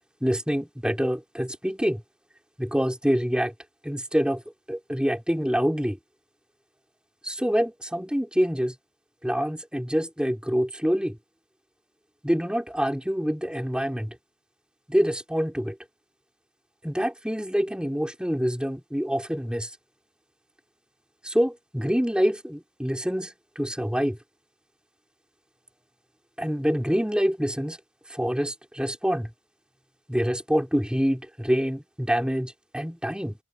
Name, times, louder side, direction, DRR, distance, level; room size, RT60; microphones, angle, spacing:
voice 1, 0.2-2.0 2.6-3.5 3.8-4.4 4.7-6.0 7.2-8.7 9.2-11.2 12.2-14.2 14.9-15.8 16.8-19.7 21.2-24.2 26.4-27.8 28.1-29.3 30.1-33.4, equal, 5° right, 4.5 m, -26 dB
head